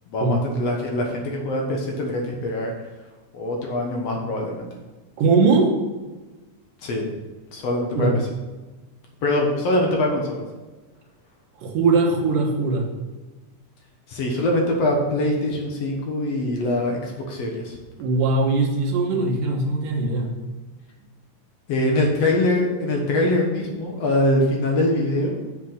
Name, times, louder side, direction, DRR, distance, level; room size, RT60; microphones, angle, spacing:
voice 1, 0.1-2.7 3.3-4.7 6.8-7.1 7.5-8.1 9.2-10.4 14.1-17.8 21.7-25.3, left 1 dB, 60° left, 0 dB, 2.1 m, -23 dB
voice 2, 5.2-5.7 8.0-8.2 11.6-12.9 18.0-20.3, right 3 dB, 80° right, 1 dB, 2.9 m, -20 dB
7.5 x 7.2 x 5.0 m, 1.2 s
omnidirectional pair, 3.7 m